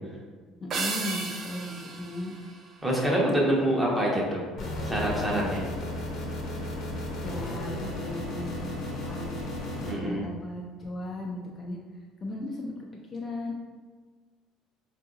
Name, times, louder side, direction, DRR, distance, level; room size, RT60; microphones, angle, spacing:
voice 1, 0.6-2.4 7.2-11.8 12.2-12.7 13.1-13.5, left 1 dB, 30° left, -1 dB, 0.4 m, -36 dB
sound 1, 0.7-3.3, right 4 dB, 45° right, 0.4 m, -35 dB
voice 2, 2.8-4.4 4.8-5.6 9.8-10.2, equal, 10° right, -4 dB, 0.9 m, -26 dB
sound 2, 4.6-9.9, left 1 dB, 55° left, 0.8 m, -34 dB
3.7 x 2.6 x 2.4 m, 1.5 s
cardioid pair, 110°, 0 cm